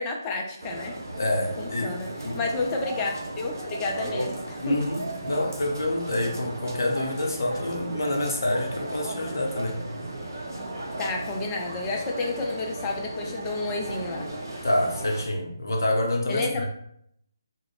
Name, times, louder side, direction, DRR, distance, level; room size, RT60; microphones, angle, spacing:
voice 1, 0.0-1.0 1.6-3.1 3.4-4.8 11.0-14.3 16.3-16.7, left 3 dB, 15° left, 0.3 m, -30 dB
sound 1, 0.6-15.2, right 1 dB, 55° right, 0.6 m, -35 dB
voice 2, 1.2-1.9 2.2-2.4 4.6-9.8 14.6-16.7, left 1 dB, 60° left, 0.6 m, -27 dB
2.4 x 2.0 x 3.1 m
figure-of-eight pair, 150°, 2 cm